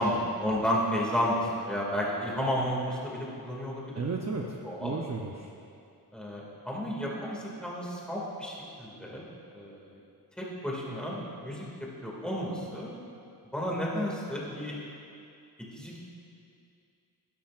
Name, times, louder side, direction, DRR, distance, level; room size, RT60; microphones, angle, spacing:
voice 1, 0.0-4.0 4.7-5.0 6.1-9.3 9.5-9.9 10.4-13.0 13.5-14.8 15.7-16.0, equal, ahead, -4 dB, 2.2 m, -32 dB
voice 2, 3.9-5.5, right 4 dB, 40° right, 0 dB, 0.7 m, -34 dB
16.5 x 12.0 x 2.5 m, 2.5 s
wide cardioid pair, 130°, 40 cm